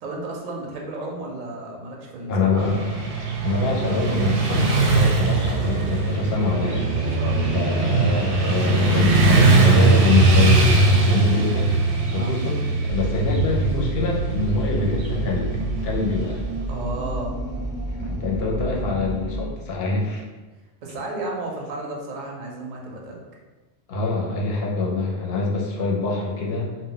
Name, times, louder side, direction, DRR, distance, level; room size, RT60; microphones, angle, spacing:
voice 1, 0.0-2.7 6.9-8.2 9.5-9.8 12.1-12.3 16.7-17.4 20.8-23.2, right 2 dB, 55° right, -1 dB, 0.5 m, -33 dB
voice 2, 2.3-3.0 3.4-6.9 7.5-11.7 12.1-15.5 15.8-16.4 18.0-20.2 23.9-26.7, left 3 dB, 65° left, -1 dB, 0.8 m, -25 dB
Motorcycle / Traffic noise roadway noise, 2.6-16.7, right 3 dB, 90° right, 0.9 m, -20 dB
sound 1, 12.9-19.5, right 1 dB, 20° left, 0.8 m, -30 dB
2.1 x 2.1 x 3.6 m, 1.3 s
omnidirectional pair, 1.1 m